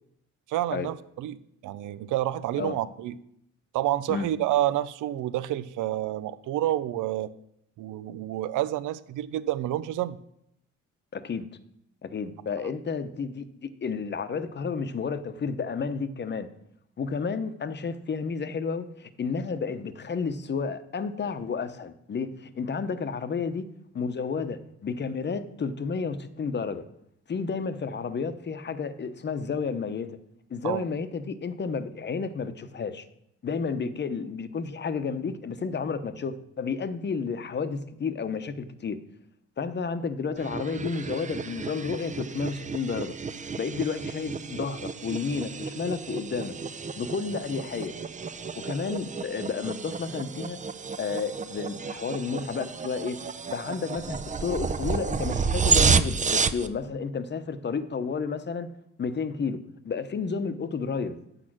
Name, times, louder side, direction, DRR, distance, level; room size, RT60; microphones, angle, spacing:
voice 1, 0.5-1.4 1.6-3.2 3.7-7.3 7.8-10.2 12.6-12.7 30.6-30.8, right 13 dB, 85° right, 16 dB, 0.6 m, -29 dB
voice 2, 11.1-11.5 12.0-16.5 17.0-23.7 23.9-26.8 27.3-30.2 30.5-33.0 33.4-39.0 39.6-43.1 43.6-46.5 47.0-48.0 48.6-50.6 51.0-53.2 53.5-58.7 59.0-61.2, left 5 dB, 35° left, 11 dB, 0.9 m, -31 dB
sound 1, 40.4-56.7, right 5 dB, 25° right, 0.6 m, -30 dB
8.8 x 6.4 x 6.1 m, 0.74 s
cardioid pair, 90°, 30 cm